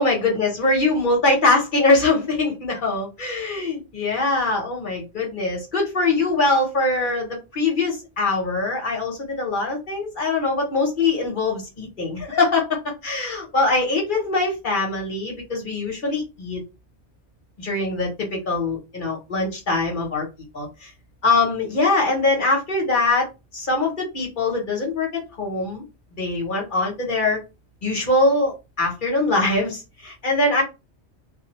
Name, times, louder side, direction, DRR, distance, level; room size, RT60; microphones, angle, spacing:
voice 1, 0.0-16.6 17.6-20.3 20.5-20.9 21.2-23.3 23.5-25.8 26.2-27.4 27.8-30.6, left 2 dB, 50° left, 0 dB, 0.9 m, -22 dB
2.2 x 2.1 x 2.8 m, 0.27 s
omnidirectional pair, 1.2 m